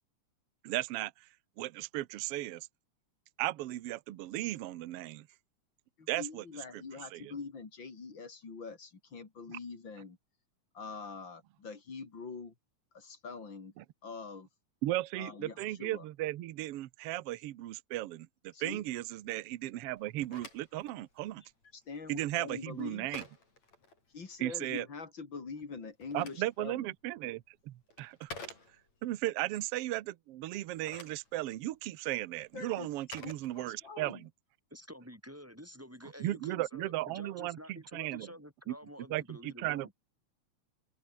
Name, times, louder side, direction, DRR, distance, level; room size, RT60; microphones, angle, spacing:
voice 1, 0.6-1.1 1.6-2.7 3.4-5.3 6.1-6.4 7.1-7.3 9.5-9.6 13.8-13.9 14.8-21.4 22.1-23.2 24.4-24.8 26.1-28.3 29.0-34.3 36.2-38.3 38.7-38.8 39.1-39.9, right 16 dB, 65° right, 1.6 m, -36 dB
voice 2, 6.0-10.2 10.7-12.5 12.9-13.7 14.0-14.5 15.2-16.1 18.5-18.8 21.4-21.5 21.7-23.2 24.1-26.9 32.5-32.9 33.2-34.3, left 4 dB, 40° left, 3.8 m, -44 dB
Telephone, 20.0-24.5 25.7-29.1 30.6-34.2, left 3 dB, 60° left, 8.8 m, -52 dB
voice 3, 34.7-39.9, equal, 5° right, 4.8 m, -49 dB
omnidirectional pair, 3.5 m